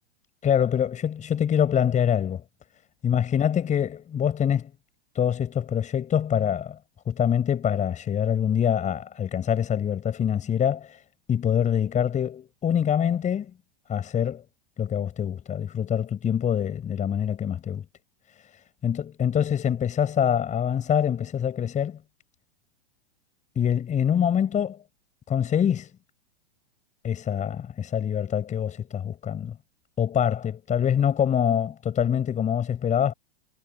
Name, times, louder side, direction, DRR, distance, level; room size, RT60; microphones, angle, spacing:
voice 1, 0.4-2.4 3.0-4.7 5.1-6.8 7.1-11.0 11.3-13.5 13.9-14.4 14.8-17.8 18.4-22.0 23.6-24.8 25.3-25.9 27.0-29.6 30.0-33.1, left 9 dB, 20° left, 7.8 m, -25 dB
hypercardioid pair, 120°, 33 cm